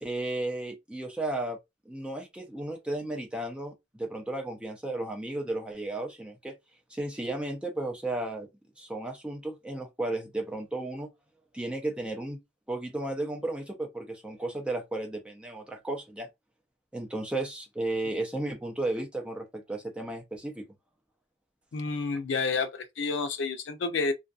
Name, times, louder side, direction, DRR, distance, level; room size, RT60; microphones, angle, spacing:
voice 1, 0.0-1.6 1.9-6.6 6.9-8.5 8.8-11.1 11.5-12.4 12.7-16.3 16.9-20.7, right 2 dB, 5° right, 0.5 m, -34 dB
voice 2, 21.7-24.1, left 4 dB, 85° left, 0.5 m, -29 dB
2.6 x 2.2 x 2.3 m
head